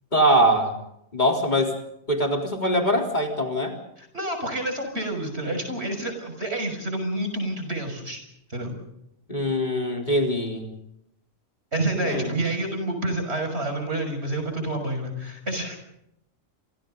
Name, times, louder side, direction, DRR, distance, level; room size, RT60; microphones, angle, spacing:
voice 1, 0.1-0.8 1.1-1.7 2.1-3.8 9.3-10.7 12.0-12.3, equal, 35° left, 2 dB, 3.8 m, -22 dB
voice 2, 4.0-8.2 8.5-8.7 11.7-15.8, right 1 dB, 50° right, 5 dB, 6.6 m, -28 dB
28.0 x 27.0 x 3.9 m, 0.78 s
omnidirectional pair, 1.4 m